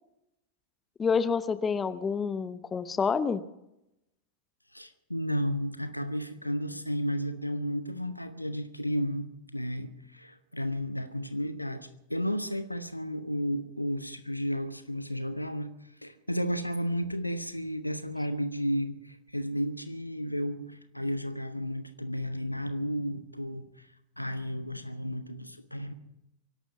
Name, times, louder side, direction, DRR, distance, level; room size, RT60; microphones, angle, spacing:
voice 1, 1.0-3.4, left 5 dB, 20° left, 0.8 m, -28 dB
voice 2, 4.7-9.3 9.5-15.7 16.0-23.6 24.2-25.9, equal, 90° left, 1.1 m, -33 dB
23.5 x 11.5 x 5.2 m
figure-of-eight pair, 90°, 0 cm